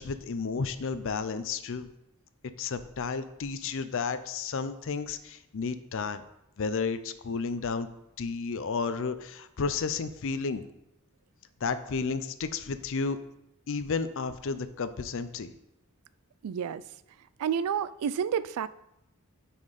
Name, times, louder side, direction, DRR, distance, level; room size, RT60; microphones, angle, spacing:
voice 1, 0.0-1.9 2.6-6.2 6.6-7.9 8.2-10.7 11.6-13.2 13.7-15.5, left 4 dB, 65° left, 12 dB, 0.5 m, -32 dB
voice 2, 16.4-16.8 17.4-18.7, right 7 dB, 80° right, 17 dB, 0.3 m, -29 dB
8.7 x 4.4 x 4.8 m, 0.85 s
head